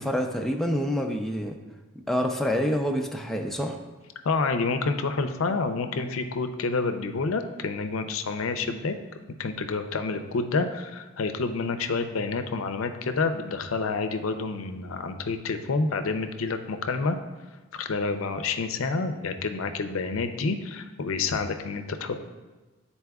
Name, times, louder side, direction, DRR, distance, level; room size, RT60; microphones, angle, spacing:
voice 1, 0.0-1.6 2.1-3.8, equal, ahead, 1 dB, 0.4 m, -27 dB
voice 2, 4.2-9.0 9.4-17.2 17.7-22.1, left 4 dB, 80° left, 8 dB, 0.5 m, -28 dB
10.5 x 4.2 x 2.3 m, 1.2 s
head